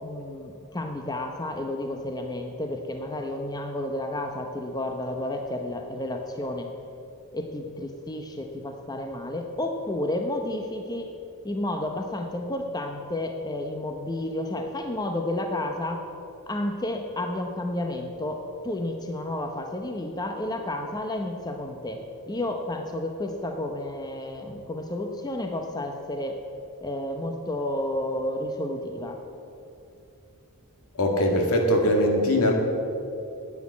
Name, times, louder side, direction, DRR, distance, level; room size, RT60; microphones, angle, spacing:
voice 1, 0.0-6.7 7.3-11.1 11.4-16.0 16.5-22.0 22.3-26.4 26.8-29.2, left 1 dB, 20° left, 4 dB, 0.8 m, -31 dB
voice 2, 31.0-32.5, left 1 dB, 75° left, 2 dB, 2.2 m, -21 dB
10.0 x 9.5 x 8.4 m, 2.7 s
head